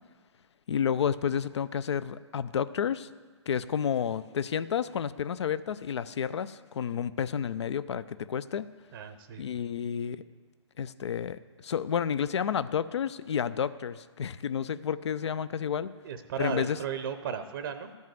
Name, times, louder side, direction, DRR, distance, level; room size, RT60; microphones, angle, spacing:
voice 1, 0.7-3.1 3.5-8.7 9.4-10.2 10.8-15.9 16.4-16.8, left 8 dB, 70° left, 15 dB, 0.5 m, -30 dB
voice 2, 8.9-9.4 16.0-17.9, right 7 dB, 50° right, 9 dB, 0.7 m, -35 dB
12.5 x 5.4 x 7.7 m, 1.5 s
hypercardioid pair, 130°, 15 cm